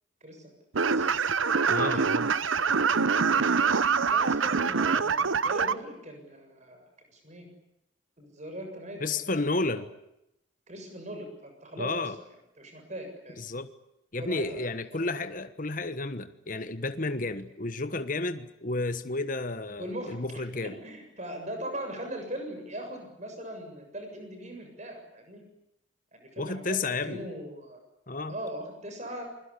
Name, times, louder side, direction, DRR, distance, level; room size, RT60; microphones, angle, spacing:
sound 1, 0.7-5.7, right 5 dB, 90° right, 0.9 m, -25 dB
voice 1, 0.9-2.3 4.0-7.5 8.2-9.3 10.7-12.1 12.6-13.5 14.1-15.2 19.8-25.4 26.1-27.8 28.3-29.3, right 1 dB, 35° right, 5 dB, 7.3 m, -40 dB
voice 2, 1.7-2.3 9.0-9.9 11.8-12.2 13.4-13.7 14.1-20.8 26.4-27.2 28.1-28.3, left 2 dB, 45° left, 11 dB, 1.3 m, -32 dB
28.0 x 21.5 x 8.4 m, 0.84 s
head